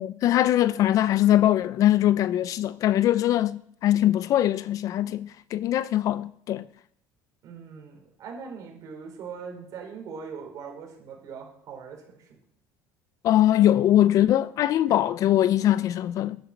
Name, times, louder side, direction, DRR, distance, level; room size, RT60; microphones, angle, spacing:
voice 1, 0.0-6.6 13.2-16.4, left 12 dB, 45° left, 0.4 m, -22 dB
voice 2, 7.4-12.0 12.3-12.4, right 6 dB, 45° right, 4.1 m, -40 dB
10.5 x 9.1 x 6.4 m
cardioid pair, 145°, 8 cm